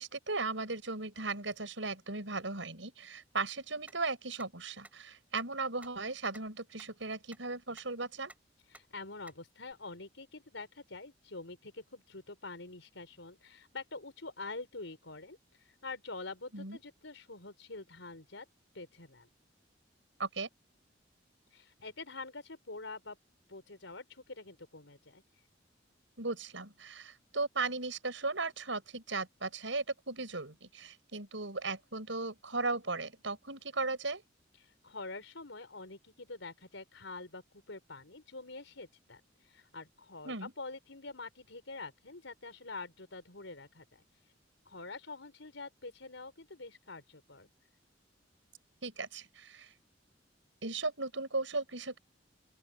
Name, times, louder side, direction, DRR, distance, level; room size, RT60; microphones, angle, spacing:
voice 1, 0.0-8.3 16.5-16.8 20.2-20.5 26.2-34.2 40.2-40.5 48.8-49.7 50.6-52.0, right 3 dB, 80° right, 6.3 m, -37 dB
sound 1, 3.9-4.0 4.4-4.5 4.8-4.9 5.4-5.5 5.8-5.9 6.3-6.4 6.8-6.9 7.3-7.4 7.8-7.9 8.3-8.4 8.7-8.8 9.3-9.4 9.7-9.8, right 1 dB, 10° right, 7.2 m, -52 dB
voice 2, 8.7-18.5 18.7-19.3 21.5-23.2 23.5-25.2 34.6-44.3 44.6-47.5, left 3 dB, 85° left, 4.5 m, -46 dB
open air
head